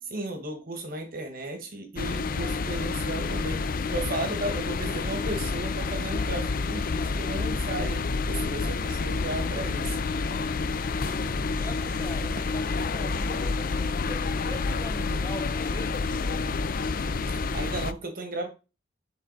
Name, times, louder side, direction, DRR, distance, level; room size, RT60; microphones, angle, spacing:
voice 1, 0.0-8.0 8.3-10.0 17.3-18.5, right 2 dB, 50° right, 1.5 m, -35 dB
sound 1, 2.0-17.9, left 4 dB, 50° left, 0.5 m, -29 dB
voice 2, 10.1-16.6, left 1 dB, 15° left, 0.8 m, -42 dB
sound 2, 11.0-11.2 12.4-12.6 13.7-13.9 15.1-15.3, right 2 dB, 25° right, 0.6 m, -43 dB
11.0 x 3.8 x 4.0 m
head